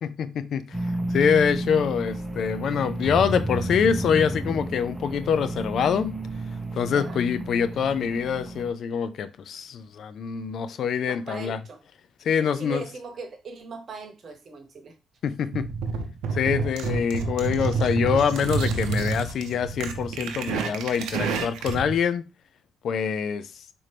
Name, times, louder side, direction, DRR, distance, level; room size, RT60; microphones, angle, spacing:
voice 1, 0.0-0.8 1.1-6.2 6.7-11.6 12.2-12.8 15.2-15.7 16.3-22.2 22.8-23.5, left 7 dB, 65° left, 0.4 m, -25 dB
sound 1, 0.7-8.7, right 1 dB, 5° right, 0.6 m, -31 dB
voice 2, 6.8-7.2 11.0-11.8 12.4-15.0, right 3 dB, 50° right, 0.9 m, -39 dB
sound 2, 15.5-21.9, right 4 dB, 90° right, 0.6 m, -28 dB
4.2 x 2.6 x 3.3 m
cardioid pair, 90°, 0 cm